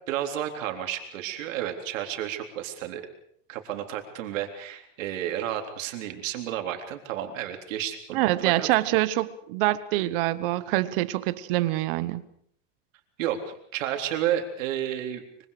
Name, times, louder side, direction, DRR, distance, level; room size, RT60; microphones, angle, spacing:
voice 1, 0.1-3.0 3.5-8.7 13.2-15.2, right 11 dB, 85° right, 4 dB, 3.8 m, -31 dB
voice 2, 8.1-12.2, right 16 dB, 45° right, 15 dB, 1.1 m, -25 dB
24.5 x 24.5 x 5.0 m, 0.65 s
supercardioid pair, 180°, 38 cm